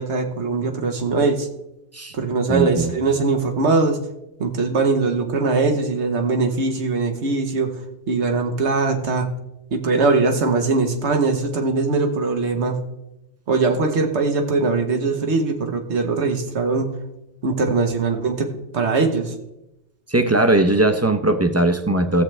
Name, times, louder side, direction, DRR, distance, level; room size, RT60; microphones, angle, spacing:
voice 1, 0.0-1.5 2.1-4.0 4.4-7.7 8.1-9.3 9.7-12.8 13.5-16.9 17.4-18.5 18.7-19.3, right 4 dB, 85° right, 5 dB, 1.4 m, -21 dB
voice 2, 2.5-2.9 20.1-22.2, right 2 dB, 20° right, 7 dB, 0.5 m, -19 dB
15.5 x 7.5 x 3.3 m, 0.91 s
omnidirectional pair, 1.1 m